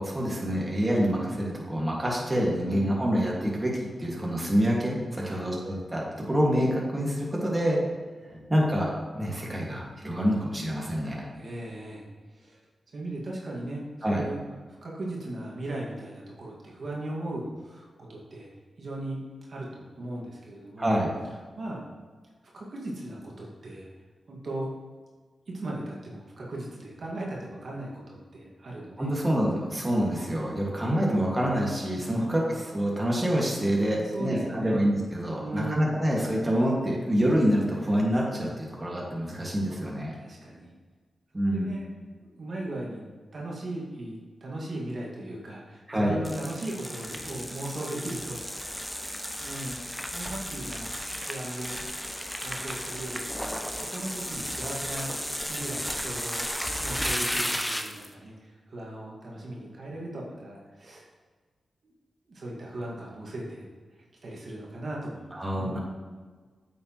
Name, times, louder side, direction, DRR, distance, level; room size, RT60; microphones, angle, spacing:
voice 1, 0.0-7.8 8.2-11.3 14.0-14.2 20.8-21.1 29.0-40.1 41.3-41.7 45.9-46.2 65.3-65.8, equal, 20° right, -3 dB, 1.9 m, -27 dB
voice 2, 2.6-3.1 5.2-5.6 11.3-12.6 12.9-13.8 14.1-14.4 14.8-18.5 18.8-20.9 21.6-21.9 22.5-23.9 24.3-24.7 25.5-29.2 32.0-32.5 34.0-34.8 35.4-36.0 40.2-40.7 41.5-41.9 42.2-43.0 43.3-48.7 49.4-49.8 50.1-51.8 52.4-55.1 55.5-56.5 56.8-61.0 61.8-61.9 62.3-65.8, right 1 dB, 65° right, -3 dB, 1.9 m, -38 dB
sound 1, 46.2-58.1, equal, 5° left, 0.8 m, -34 dB
8.6 x 6.5 x 3.1 m, 1.5 s
cardioid pair, 60°, 0 cm